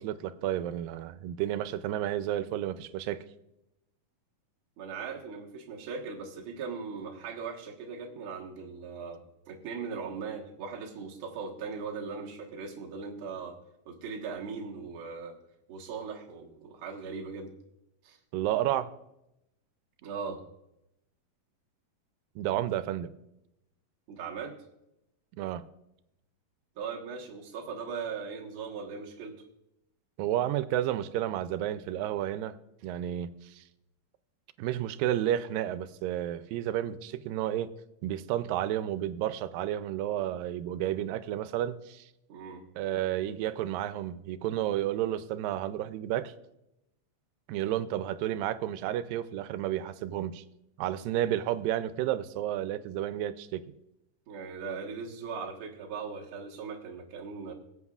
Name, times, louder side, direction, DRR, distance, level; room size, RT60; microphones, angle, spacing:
voice 1, 0.0-3.3 18.3-18.9 22.4-23.1 25.4-25.6 30.2-32.5 32.8-33.6 34.6-37.7 38.0-42.1 42.8-46.3 47.5-50.4 50.8-53.7, right 12 dB, 85° right, 13 dB, 2.3 m, -31 dB
voice 2, 4.8-13.6 13.8-15.4 15.7-17.5 18.0-18.2 20.0-20.4 24.1-24.5 26.7-29.3 42.3-42.6 54.3-57.5, right 5 dB, 55° right, -1 dB, 1.7 m, -39 dB
22.5 x 8.0 x 2.4 m, 0.86 s
omnidirectional pair, 3.9 m